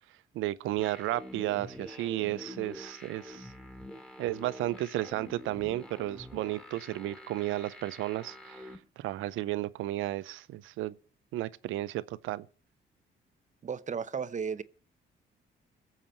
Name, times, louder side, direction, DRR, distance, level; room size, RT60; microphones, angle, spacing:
voice 1, 0.3-3.5 4.2-11.0 11.3-12.5, right 16 dB, 85° right, 0.6 m, -33 dB
sound 1, 0.8-8.8, left 1 dB, 5° left, 2.4 m, -46 dB
voice 2, 13.6-14.6, right 6 dB, 40° right, 0.9 m, -34 dB
21.5 x 7.3 x 4.3 m
cardioid pair, 90°, 20 cm